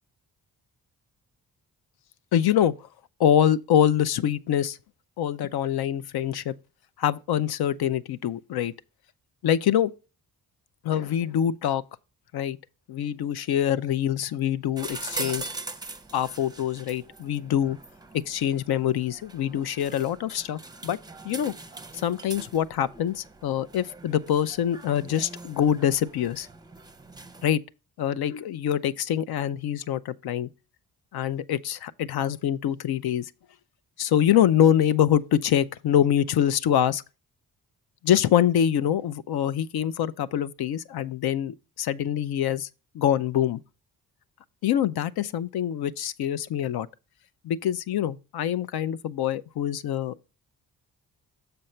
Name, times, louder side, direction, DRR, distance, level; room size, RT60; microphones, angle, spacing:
voice 1, 2.3-2.7 3.2-4.8 5.2-6.5 7.0-8.7 9.4-9.9 10.8-11.8 12.3-12.6 12.9-15.5 16.1-17.8 18.3-21.0 21.2-21.5 22.0-26.5 27.4-27.6 28.0-30.5 31.1-33.2 34.0-37.0 38.0-42.7 42.9-43.6 44.6-46.9 47.4-50.3, left 10 dB, 75° left, 0.6 m, -25 dB
sound 1, 14.8-27.5, right 3 dB, 10° right, 0.6 m, -41 dB
6.8 x 5.2 x 4.4 m
cardioid pair, 85°, 38 cm